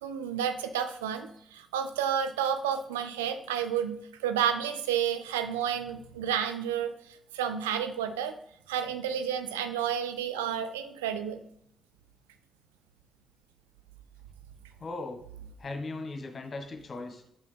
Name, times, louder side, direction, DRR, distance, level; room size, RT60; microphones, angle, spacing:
voice 1, 0.0-6.9 7.3-8.3 8.7-11.4, right 8 dB, 85° right, 9 dB, 0.4 m, -31 dB
voice 2, 14.8-15.2 15.6-17.2, left 2 dB, 45° left, 4 dB, 1.4 m, -38 dB
6.2 x 5.5 x 3.4 m, 0.72 s
hypercardioid pair, 40°, 0 cm